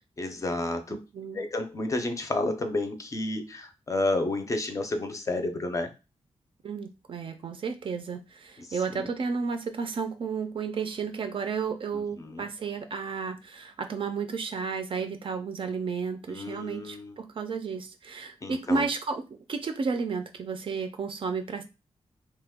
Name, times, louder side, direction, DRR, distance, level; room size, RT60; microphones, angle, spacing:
voice 1, 0.2-1.0 1.3-5.9 8.6-9.1 12.2-12.4 16.3-17.1 18.4-18.8, left 2 dB, 30° left, 6 dB, 0.4 m, -31 dB
voice 2, 0.9-1.4 6.6-19.2 19.5-21.6, right 5 dB, 50° right, 7 dB, 0.4 m, -32 dB
2.9 x 2.2 x 3.4 m, 0.28 s
wide cardioid pair, 165°, 11 cm